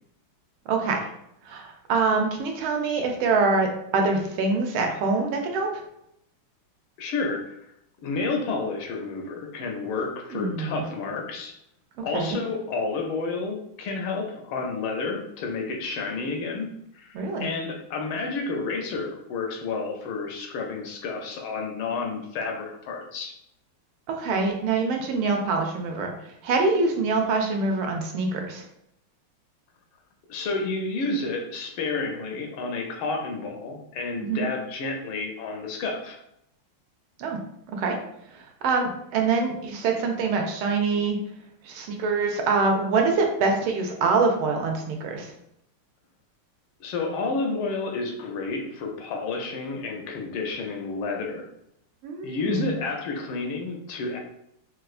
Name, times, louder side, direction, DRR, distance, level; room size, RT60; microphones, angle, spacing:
voice 1, 0.7-1.0 1.4-3.7 3.9-5.7 10.3-10.9 12.0-12.4 17.1-17.5 24.1-26.1 26.4-28.6 34.2-34.5 37.2-37.4 37.7-38.0 38.3-41.2 41.6-45.3 52.0-52.6, right 4 dB, 80° right, 2 dB, 1.4 m, -25 dB
voice 2, 7.0-7.6 8.0-11.5 12.0-23.3 30.3-36.2 46.8-51.4 52.2-54.2, left 3 dB, 75° left, 2 dB, 1.4 m, -30 dB
4.1 x 2.3 x 2.4 m, 0.75 s
omnidirectional pair, 2.4 m